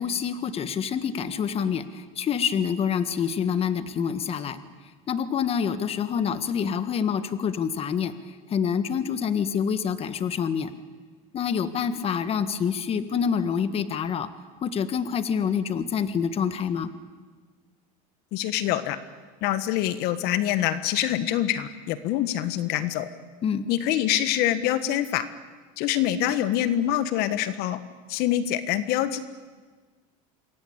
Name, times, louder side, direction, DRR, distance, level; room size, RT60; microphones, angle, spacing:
voice 1, 0.0-4.6 5.1-10.7 11.3-14.3 14.6-16.9 23.4-23.6, left 7 dB, 35° left, 12 dB, 1.5 m, -27 dB
voice 2, 18.3-19.0 19.4-23.1 23.7-25.3 25.8-27.8 28.1-29.2, left 12 dB, 65° left, 12 dB, 1.4 m, -25 dB
27.5 x 21.5 x 8.8 m, 1.4 s
supercardioid pair, 125°, 18 cm